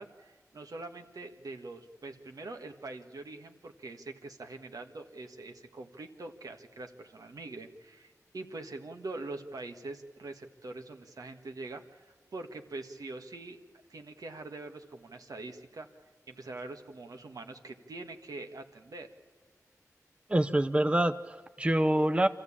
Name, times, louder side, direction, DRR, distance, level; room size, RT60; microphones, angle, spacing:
voice 1, 0.0-13.6 13.9-15.9 16.3-19.1, right 2 dB, 80° right, 5 dB, 1.7 m, -44 dB
voice 2, 20.3-22.3, right 1 dB, 20° right, 8 dB, 0.8 m, -26 dB
26.5 x 14.5 x 8.7 m, 1.5 s
wide cardioid pair, 90°, 6 cm